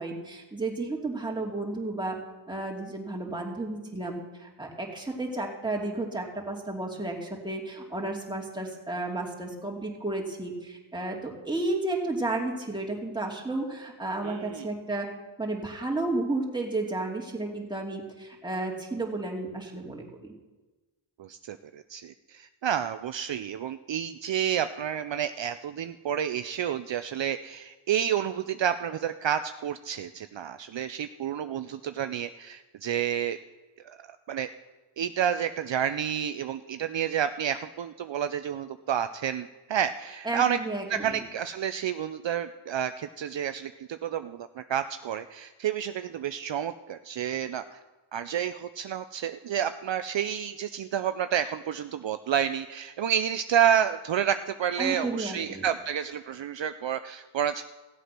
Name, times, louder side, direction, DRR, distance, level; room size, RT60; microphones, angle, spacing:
voice 1, 0.0-2.2 2.5-15.1 15.4-20.0 40.2-41.2 54.8-55.6, right 2 dB, 10° right, -2 dB, 2.7 m, -32 dB
voice 2, 14.2-14.7 21.2-33.4 33.8-34.5 35.0-40.6 40.9-47.8 48.1-57.6, right 9 dB, 65° right, 10 dB, 0.6 m, -30 dB
16.0 x 8.2 x 6.0 m, 1.2 s
wide cardioid pair, 70°, 49 cm